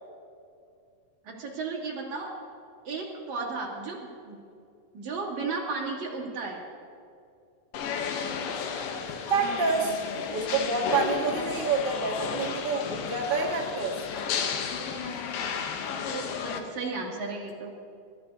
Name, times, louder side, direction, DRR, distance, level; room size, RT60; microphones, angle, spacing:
voice 1, 1.2-2.3 2.9-4.4 4.9-6.6 15.0-15.1 16.1-17.8, right 4 dB, 60° right, -4 dB, 3.6 m, -34 dB
sound 1, 7.7-16.6, left 6 dB, 80° left, 2.6 m, -33 dB
voice 2, 9.3-9.9 10.3-14.0, right 4 dB, 40° right, -1 dB, 0.7 m, -27 dB
27.5 x 13.5 x 2.8 m, 2.4 s
omnidirectional pair, 3.9 m